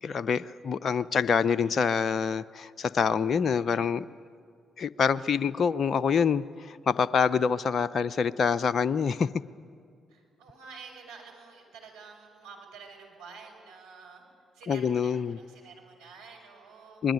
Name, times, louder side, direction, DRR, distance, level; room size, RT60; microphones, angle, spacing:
voice 1, 0.0-4.1 4.8-9.3 14.7-15.4 17.0-17.1, left 6 dB, 55° left, 15 dB, 0.6 m, -26 dB
voice 2, 10.1-14.2 14.5-17.0, right 5 dB, 80° right, 0 dB, 6.2 m, -49 dB
25.5 x 21.0 x 9.4 m, 2.3 s
hypercardioid pair, 45°, 0 cm